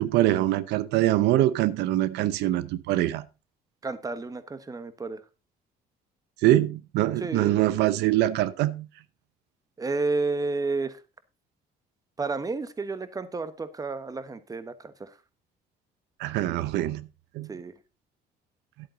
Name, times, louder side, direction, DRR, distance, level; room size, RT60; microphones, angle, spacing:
voice 1, 0.0-3.3 6.4-8.9 16.2-17.1 17.3-17.5, right 14 dB, 85° right, 0.7 m, -24 dB
voice 2, 3.8-5.2 7.2-7.6 9.8-11.0 12.2-15.2 17.5-17.7, right 3 dB, 20° right, 1.2 m, -31 dB
11.0 x 8.6 x 3.9 m
cardioid pair, 110°, 17 cm